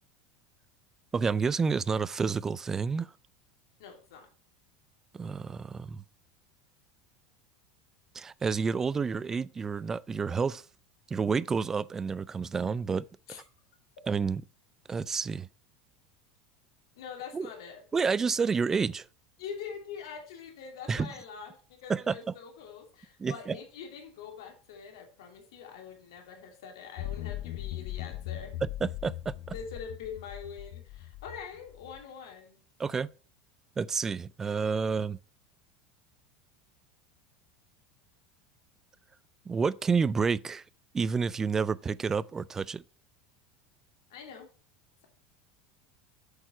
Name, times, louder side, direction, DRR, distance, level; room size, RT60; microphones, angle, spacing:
voice 1, 1.1-3.1 5.1-6.0 8.1-10.6 11.1-13.0 14.1-14.4 14.9-15.5 17.3-17.5 17.9-19.1 20.9-21.1 21.9-22.2 23.2-23.6 28.8-29.3 32.8-33.1 33.8-35.2 39.5-40.6 40.9-42.8, right 5 dB, 15° right, 0.3 m, -29 dB
voice 2, 3.8-4.3 13.3-13.4 16.9-17.8 19.4-28.6 29.4-32.6 44.1-44.5, left 6 dB, 85° left, 2.7 m, -44 dB
sound 1, 27.0-32.0, left 14 dB, 65° left, 0.6 m, -39 dB
8.1 x 6.4 x 4.4 m
supercardioid pair, 135°, 3 cm